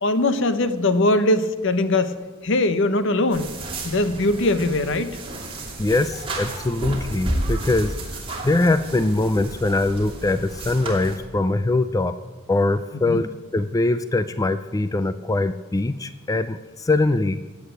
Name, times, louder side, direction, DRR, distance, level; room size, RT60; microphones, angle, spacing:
voice 1, 0.0-2.1 2.4-3.5 3.8-5.2 13.1-13.2, left 2 dB, 65° left, 11 dB, 0.9 m, -21 dB
sound 1, 3.3-11.2, right 1 dB, 25° right, 2.9 m, -32 dB
voice 2, 5.8-12.1 12.5-13.3 13.5-17.4, left 2 dB, 15° left, 12 dB, 0.4 m, -22 dB
15.5 x 8.5 x 8.0 m, 1.4 s
head